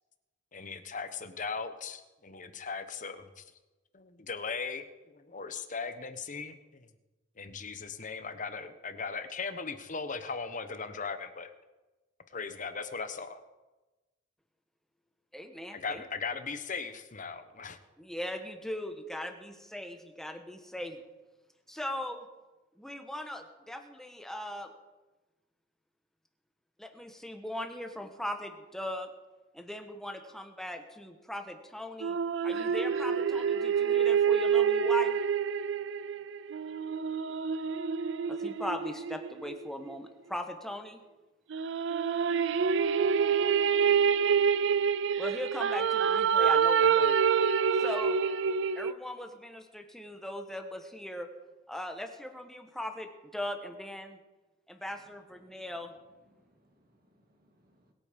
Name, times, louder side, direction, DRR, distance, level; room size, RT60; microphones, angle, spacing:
voice 1, 0.5-3.4 3.9-6.9 7.4-11.5 12.3-13.4 15.7-17.8, left 5 dB, 45° left, 10 dB, 1.1 m, -38 dB
voice 2, 15.3-16.0 18.0-21.0 21.7-22.3 22.8-24.7 26.8-29.1 29.5-32.2 32.4-35.2 38.3-41.0 45.2-47.2 47.8-48.2 48.8-51.3 51.7-54.2 54.7-55.9, left 1 dB, ahead, 6 dB, 1.3 m, -39 dB
sound 1, 32.0-39.7 41.5-48.9, right 7 dB, 70° right, 0.5 m, -27 dB
voice 3, 54.9-55.8 56.1-57.9, equal, 50° right, 2 dB, 1.9 m, -68 dB
22.0 x 8.6 x 5.2 m, 1.1 s
head